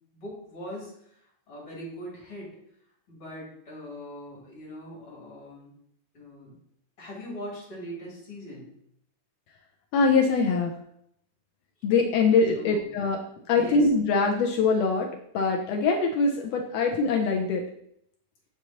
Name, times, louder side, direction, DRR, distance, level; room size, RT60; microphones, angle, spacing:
voice 1, 0.1-2.5 3.1-5.7 6.1-6.5 7.0-8.7 12.5-12.9 13.5-13.9, equal, 45° left, -5 dB, 3.4 m, -41 dB
voice 2, 9.9-10.8 11.8-13.2 13.5-17.6, left 4 dB, 80° left, 2 dB, 1.5 m, -23 dB
6.6 x 6.0 x 2.9 m, 0.71 s
omnidirectional pair, 3.5 m